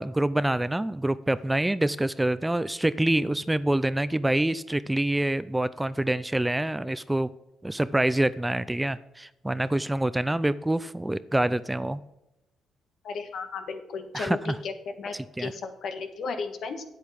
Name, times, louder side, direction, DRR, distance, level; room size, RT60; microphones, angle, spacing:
voice 1, 0.0-7.3 7.6-12.0 14.1-14.6 15.1-15.5, right 1 dB, 10° right, 16 dB, 0.4 m, -26 dB
voice 2, 13.0-16.8, left 4 dB, 65° left, 7 dB, 1.5 m, -34 dB
8.8 x 8.3 x 5.8 m, 0.90 s
cardioid pair, 90°, 0 cm